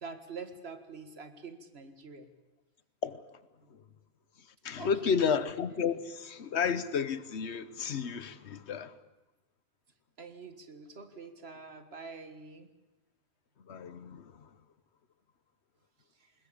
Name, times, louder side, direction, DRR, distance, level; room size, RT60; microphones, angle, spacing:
voice 1, 0.0-2.3 4.8-5.2 10.2-12.7, right 4 dB, 70° right, 2.0 m, -45 dB
voice 2, 4.6-8.9 13.7-14.5, left 6 dB, 80° left, 1.3 m, -32 dB
21.0 x 20.0 x 8.5 m
omnidirectional pair, 1.1 m